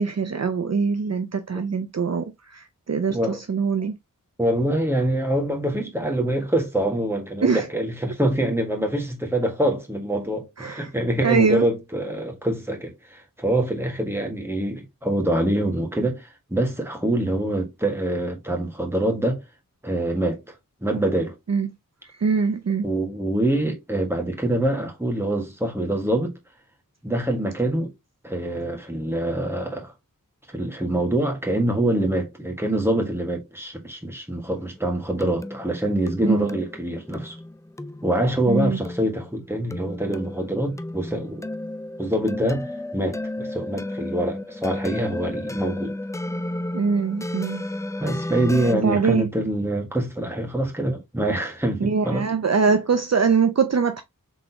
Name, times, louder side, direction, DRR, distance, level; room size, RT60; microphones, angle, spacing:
voice 1, 0.0-4.0 7.4-7.7 10.6-10.9 11.2-11.7 21.5-21.7 22.0-22.9 36.2-36.5 38.5-38.8 46.7-47.7 48.7-49.3 51.8-54.0, right 5 dB, 50° right, 0.5 m, -23 dB
voice 2, 4.4-19.4 19.8-20.5 20.8-21.3 22.8-26.3 27.0-27.9 28.2-29.9 30.5-37.3 38.0-41.4 42.0-42.7 42.9-45.9 48.0-52.2, right 1 dB, 5° right, 1.5 m, -25 dB
sound 1, 34.5-48.7, left 1 dB, 10° left, 0.3 m, -33 dB
4.0 x 3.7 x 2.8 m
wide cardioid pair, 70°, 34 cm